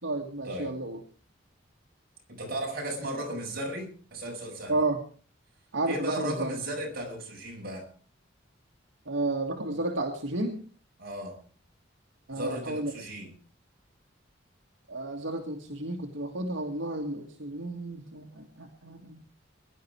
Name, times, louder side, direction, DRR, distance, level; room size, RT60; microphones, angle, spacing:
voice 1, 0.0-1.0 4.7-5.0 5.7-6.5 9.1-10.6 12.3-12.9 14.9-19.2, right 2 dB, 80° right, 2 dB, 2.2 m, -32 dB
voice 2, 2.3-4.8 5.9-7.9 11.0-11.4 12.3-13.3, right 1 dB, 50° right, 0 dB, 7.5 m, -35 dB
22.0 x 11.5 x 4.8 m, 0.42 s
head